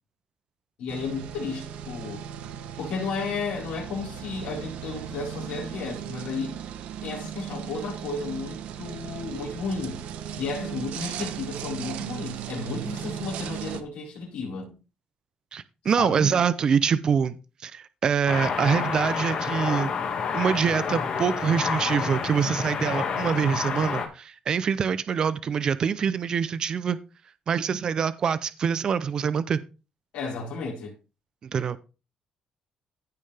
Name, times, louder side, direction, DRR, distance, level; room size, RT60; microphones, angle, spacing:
voice 1, 0.8-2.3 2.8-6.6 7.0-10.1 10.4-14.8 15.8-16.4 30.1-30.9, left 4 dB, 85° left, 4.4 m, -33 dB
sound 1, 0.9-13.8, right 9 dB, 85° right, 0.9 m, -37 dB
voice 2, 15.5-19.9 20.3-27.0 27.5-29.6 31.4-31.8, right 7 dB, 35° right, 0.5 m, -25 dB
sound 2, 18.3-24.1, left 6 dB, 45° left, 1.9 m, -29 dB
15.0 x 5.5 x 3.3 m
cardioid pair, 170°, 2 cm